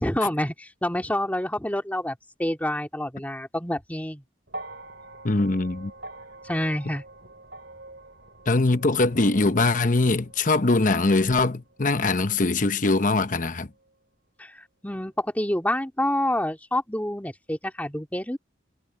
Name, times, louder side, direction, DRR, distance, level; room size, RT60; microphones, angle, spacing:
voice 1, 0.0-2.1 2.4-4.2 6.4-7.0 14.4-14.5 14.8-18.4, left 1 dB, 10° left, 2.3 m, -27 dB
sound 1, 4.5-12.8 13.9-14.0, right 2 dB, 60° right, 5.6 m, -45 dB
voice 2, 5.2-5.9 8.5-13.7, left 3 dB, 45° left, 0.9 m, -22 dB
head